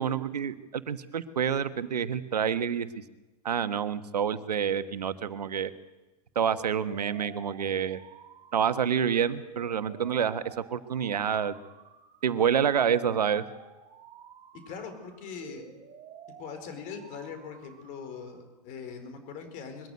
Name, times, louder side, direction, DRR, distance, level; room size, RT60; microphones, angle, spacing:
voice 1, 0.0-2.9 3.4-5.7 6.3-8.0 8.5-11.5 12.2-13.4, right 8 dB, 80° right, 12 dB, 1.4 m, -28 dB
sound 1, 6.4-18.4, right 8 dB, 30° right, 2.9 m, -51 dB
voice 2, 14.7-15.6 16.4-19.9, left 6 dB, 40° left, 7 dB, 5.0 m, -41 dB
22.0 x 14.5 x 9.6 m, 1.1 s
hypercardioid pair, 105°, 20 cm